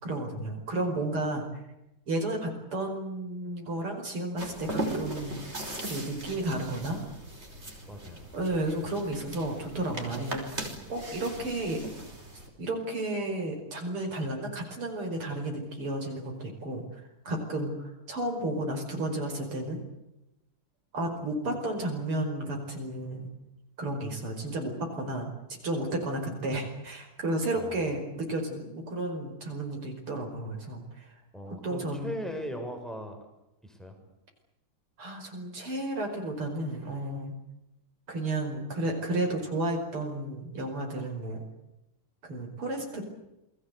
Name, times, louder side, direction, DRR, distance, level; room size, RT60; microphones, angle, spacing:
voice 1, 0.0-1.6 2.1-5.4 5.9-7.0 8.3-11.8 12.6-19.8 20.9-23.3 23.8-25.3 25.6-31.2 31.5-32.1 35.0-37.3 38.1-41.4 42.2-43.0, right 1 dB, 80° right, 2 dB, 6.0 m, -32 dB
sound 1, 4.4-12.5, right 1 dB, 30° right, 5.3 m, -38 dB
voice 2, 7.9-8.3 27.5-27.9 31.3-33.3 33.6-34.0, equal, ahead, 5 dB, 6.3 m, -39 dB
29.0 x 21.0 x 8.1 m, 0.91 s
omnidirectional pair, 2.4 m